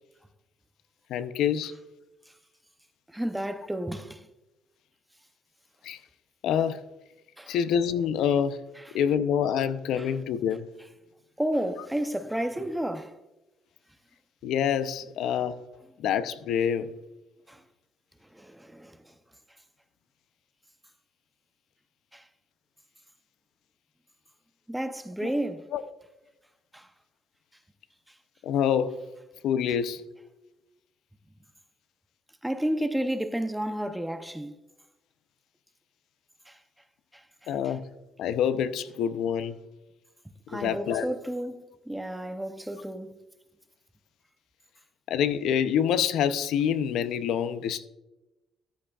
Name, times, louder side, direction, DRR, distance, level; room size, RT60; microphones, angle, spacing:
voice 1, 1.1-1.7 5.8-6.0 6.4-6.8 7.5-8.6 8.9-10.7 14.4-15.6 16.0-16.9 25.2-25.3 25.7-25.8 28.4-29.0 29.4-30.0 37.5-37.9 38.2-39.6 40.5-41.1 45.1-47.8, left 8 dB, 75° left, 0.6 m, -26 dB
voice 2, 3.1-4.3 7.4-7.6 8.8-8.9 10.0-10.1 11.4-13.2 17.5-17.6 18.3-19.0 22.1-22.2 24.7-25.7 26.7-26.9 32.4-34.5 36.5-36.6 37.1-37.2 37.6-37.7 40.5-43.2, right 1 dB, 5° right, 0.6 m, -31 dB
14.0 x 10.0 x 2.4 m
cardioid pair, 140°, 0 cm